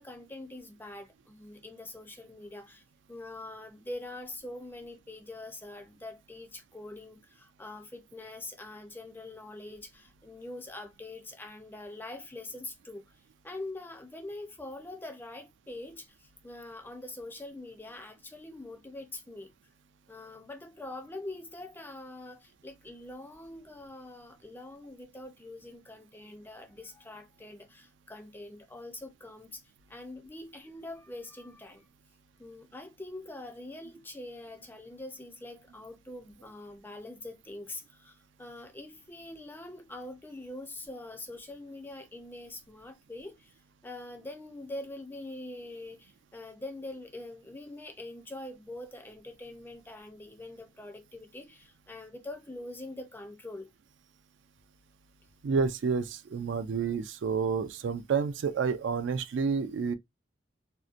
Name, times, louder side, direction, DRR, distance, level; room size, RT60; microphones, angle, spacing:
voice 1, 0.0-13.0 13.4-19.5 20.1-29.6 29.9-31.9 32.4-43.5 43.8-53.7, left 2 dB, 10° left, 0.4 m, -44 dB
voice 2, 55.4-59.9, right 5 dB, 75° right, 0.4 m, -29 dB
2.7 x 2.1 x 2.4 m
head